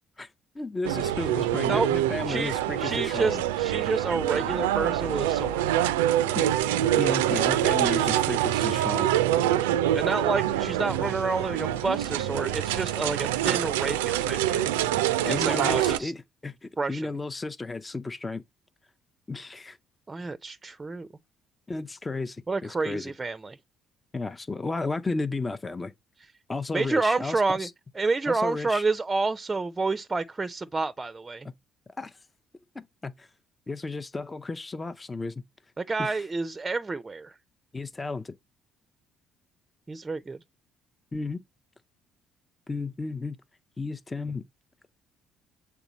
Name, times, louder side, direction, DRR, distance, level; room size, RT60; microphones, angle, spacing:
voice 1, 0.5-3.4 6.3-6.5 7.0-9.1 15.2-18.4 19.3-19.8 21.7-23.1 24.1-25.9 26.5-27.7 28.3-28.8 32.0-32.2 32.7-33.3 33.7-35.3 36.0-36.2 37.7-38.4 41.1-41.4 42.7-43.4 43.8-44.4, left 3 dB, 25° left, 0.6 m, -33 dB
sound 1, 0.8-16.0, right 12 dB, 85° right, 0.3 m, -25 dB
voice 2, 2.3-5.6 9.9-14.7 15.2-16.1 16.8-17.1 20.1-21.1 22.5-23.6 26.7-27.7 27.9-31.5 35.8-37.4 39.9-40.4, right 3 dB, 25° right, 0.5 m, -29 dB
7.0 x 3.5 x 4.0 m
hypercardioid pair, 55°, 0 cm